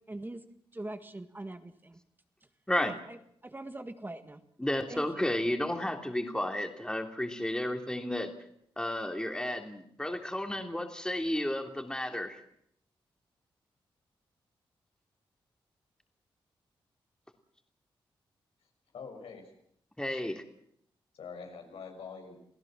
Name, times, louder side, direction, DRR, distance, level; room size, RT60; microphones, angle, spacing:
voice 1, 0.1-0.4 0.7-2.0 2.8-4.4 4.9-5.1, right 2 dB, 20° right, 9 dB, 1.7 m, -42 dB
voice 2, 4.6-8.3 8.8-12.4 20.0-20.4, left 1 dB, 10° left, 4 dB, 3.1 m, -32 dB
voice 3, 18.9-19.5 20.1-20.2 21.1-22.4, left 5 dB, 90° left, 2 dB, 6.2 m, -45 dB
28.5 x 16.5 x 7.5 m, 0.71 s
cardioid pair, 80°, 10 cm